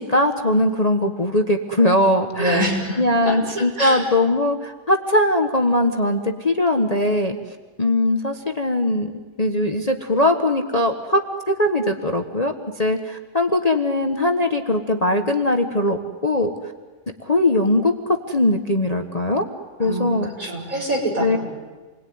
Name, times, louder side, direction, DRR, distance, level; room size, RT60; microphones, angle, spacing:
voice 1, 0.0-2.6 3.0-7.4 7.8-9.1 9.4-16.5 17.2-19.5 19.8-20.5 21.2-21.4, left 1 dB, 25° left, 4 dB, 1.4 m, -20 dB
voice 2, 2.4-3.0 3.3-4.0 19.8-21.4, right 1 dB, 55° right, -1 dB, 6.8 m, -25 dB
28.5 x 21.5 x 9.6 m, 1.3 s
omnidirectional pair, 1.8 m